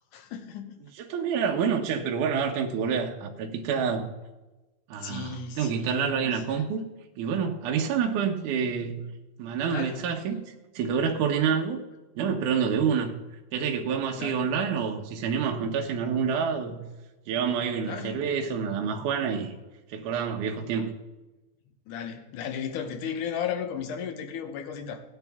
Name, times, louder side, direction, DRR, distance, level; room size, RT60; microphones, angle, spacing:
voice 1, 0.1-0.8 5.0-6.7 9.7-10.0 14.2-14.4 17.8-18.3 21.9-25.0, left 7 dB, 70° left, 2.2 m, -35 dB
voice 2, 1.0-4.1 4.9-6.8 7.2-9.0 9.4-11.8 12.2-13.2 13.5-16.9 17.3-19.5 19.9-20.9, right 6 dB, 70° right, 2.3 m, -28 dB
18.0 x 9.2 x 3.5 m
omnidirectional pair, 4.2 m